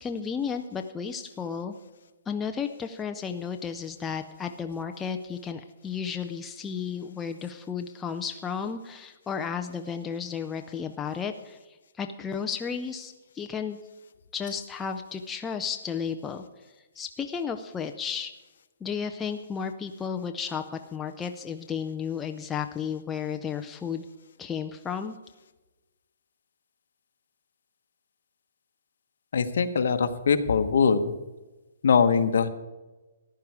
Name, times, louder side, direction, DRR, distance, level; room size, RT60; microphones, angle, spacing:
voice 1, 0.0-1.7 2.3-11.6 12.0-13.8 14.3-16.4 17.0-18.3 18.8-24.0 24.4-25.2, left 6 dB, 10° left, 5 dB, 0.4 m, -33 dB
voice 2, 29.3-31.0 31.8-32.5, left 6 dB, 60° left, 9 dB, 1.1 m, -22 dB
14.5 x 10.5 x 4.8 m, 1.2 s
hypercardioid pair, 175°, 0 cm